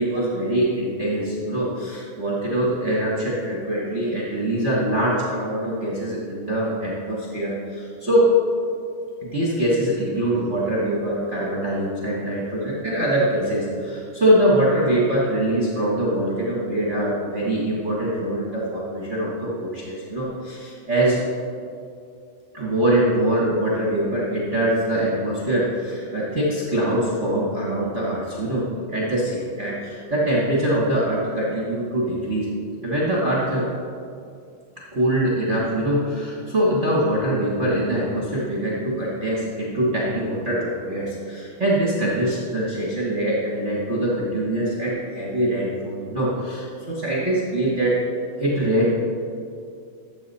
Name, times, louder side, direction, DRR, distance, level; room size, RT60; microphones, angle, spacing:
voice 1, 0.0-8.3 9.2-21.2 22.5-32.5 32.8-33.7 34.9-48.0 48.4-48.9, right 1 dB, 45° right, -6 dB, 0.9 m, -23 dB
13.5 x 7.5 x 4.3 m, 2.3 s
omnidirectional pair, 3.9 m